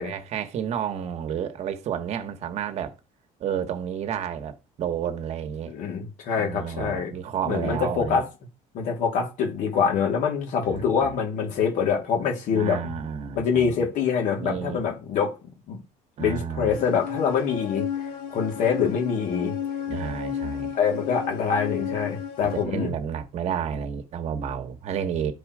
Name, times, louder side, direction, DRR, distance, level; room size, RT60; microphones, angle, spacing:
voice 1, 0.0-2.9 3.4-5.7 6.4-8.2 10.7-11.1 12.5-13.7 14.4-14.8 16.2-16.7 19.9-20.7 22.5-25.3, right 8 dB, 50° right, 1.5 m, -31 dB
voice 2, 5.7-7.1 7.5-8.3 8.7-12.8 13.4-15.3 15.7-15.8 16.2-19.6 20.7-22.9, left 6 dB, 60° left, 3.5 m, -25 dB
sound 1, 16.7-22.6, left 8 dB, 85° left, 3.5 m, -33 dB
13.0 x 4.9 x 4.9 m
cardioid pair, 155°, 15 cm